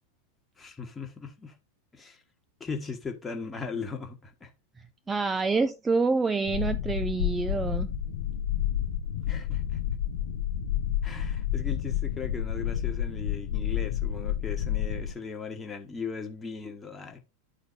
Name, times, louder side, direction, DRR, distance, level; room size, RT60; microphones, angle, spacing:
voice 1, 0.6-1.6 1.9-2.2 2.6-4.5 9.3-9.8 11.0-17.2, left 5 dB, 15° left, 1.4 m, -38 dB
voice 2, 5.1-7.9, right 4 dB, 15° right, 0.4 m, -27 dB
sound 1, 6.5-15.1, left 10 dB, 60° left, 0.8 m, -30 dB
12.5 x 4.4 x 2.6 m
figure-of-eight pair, 90°, 0 cm